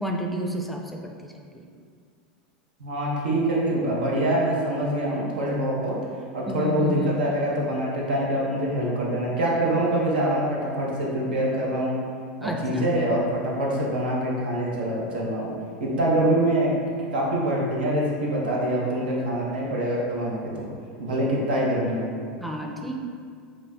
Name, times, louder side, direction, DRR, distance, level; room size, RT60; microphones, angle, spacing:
voice 1, 0.0-1.1 1.5-1.6 6.5-7.1 12.4-12.9 22.4-23.0, right 1 dB, ahead, 0 dB, 0.4 m, -30 dB
voice 2, 2.8-6.0 6.3-12.0 12.4-15.5 15.8-16.7 17.1-20.7 21.0-22.1, right 1 dB, 90° right, -4 dB, 0.8 m, -25 dB
4.0 x 3.1 x 2.2 m, 2.1 s
supercardioid pair, 115°, 5 cm